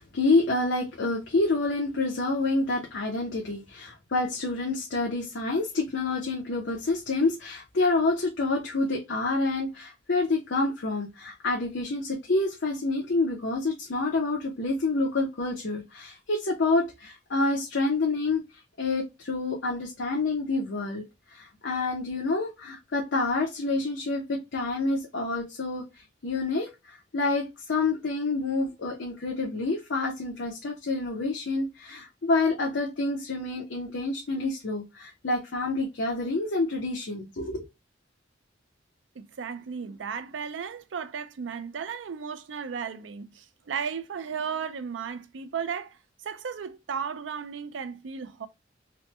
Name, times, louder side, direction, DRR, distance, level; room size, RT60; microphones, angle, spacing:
voice 1, 0.0-18.4 18.8-21.0 21.3-25.8 26.2-37.6, left 3 dB, 75° left, 0.7 m, -28 dB
voice 2, 39.2-46.0 46.2-48.5, right 6 dB, 80° right, 0.4 m, -35 dB
3.1 x 2.1 x 3.0 m
head